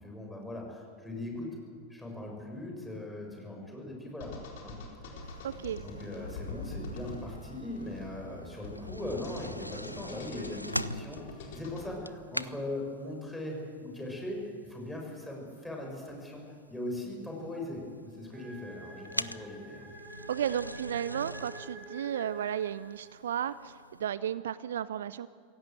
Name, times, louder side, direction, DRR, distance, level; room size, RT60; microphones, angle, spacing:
voice 1, 0.0-1.6 1.9-4.3 4.6-4.7 5.8-11.2 11.5-14.4 14.7-16.4 16.7-19.9, left 1 dB, 5° left, -1 dB, 7.0 m, -39 dB
sound 1, 4.2-11.9, left 2 dB, 55° left, 4.2 m, -44 dB
sound 2, 5.2-24.1, equal, 90° left, 0.5 m, -44 dB
voice 2, 5.4-5.8 20.3-25.3, right 10 dB, 60° right, 18 dB, 0.5 m, -34 dB
sound 3, 18.3-23.2, right 1 dB, 35° right, 6.6 m, -48 dB
26.5 x 17.0 x 7.9 m, 2.1 s
figure-of-eight pair, 90°, 0 cm